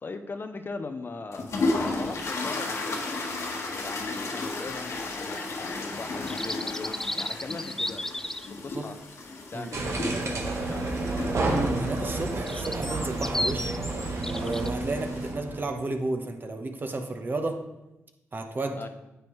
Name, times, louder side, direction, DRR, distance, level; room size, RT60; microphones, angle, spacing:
voice 1, 0.0-1.5 1.8-3.0 3.8-9.0 9.5-11.1 18.7-18.9, left 3 dB, 40° left, 8 dB, 0.7 m, -39 dB
sound 1, 1.3-15.3, left 2 dB, 65° left, 1.4 m, -34 dB
sound 2, 6.3-8.5 12.1-14.7, left 1 dB, 5° left, 0.3 m, -33 dB
voice 2, 9.5-10.2 11.5-13.7 14.2-17.6 18.3-18.8, right 2 dB, 40° right, 4 dB, 1.2 m, -32 dB
sound 3, 9.7-15.7, right 2 dB, 65° right, 1.5 m, -30 dB
9.3 x 7.8 x 3.2 m, 0.96 s
cardioid pair, 65°, 5 cm